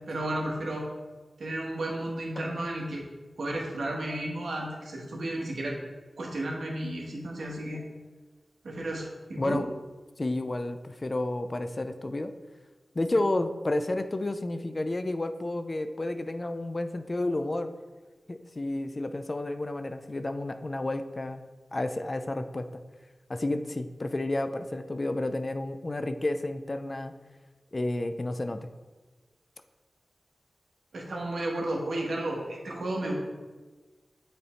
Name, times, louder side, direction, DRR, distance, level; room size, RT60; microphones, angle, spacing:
voice 1, 0.1-0.9 1.4-3.1 3.4-5.8 6.2-7.8 8.6-9.6 30.9-33.1, right 1 dB, 85° right, -1 dB, 1.1 m, -33 dB
voice 2, 9.4-9.7 10.2-12.3 13.0-17.7 18.3-21.4 21.7-22.7 23.3-27.1 27.7-28.6, left 2 dB, 45° left, 8 dB, 0.4 m, -31 dB
6.8 x 3.4 x 4.3 m, 1.3 s
cardioid pair, 40°, 0 cm